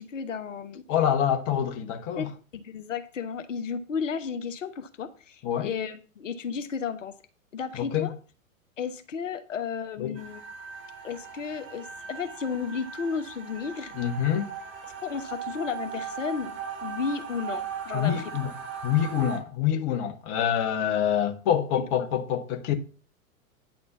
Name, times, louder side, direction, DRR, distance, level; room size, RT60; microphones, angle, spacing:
voice 1, 0.0-0.8 2.2-7.1 7.5-8.1 8.8-10.4 11.0-14.0 15.0-18.2 22.0-22.1, left 6 dB, 60° left, 1.1 m, -33 dB
voice 2, 0.9-2.3 5.4-5.7 7.8-8.1 10.0-10.2 13.9-14.5 17.9-18.5 18.8-22.7, left 9 dB, 30° left, 1.1 m, -26 dB
sound 1, 10.2-19.4, right 7 dB, 25° right, 3.2 m, -38 dB
9.5 x 4.3 x 6.8 m
figure-of-eight pair, 105°, 42 cm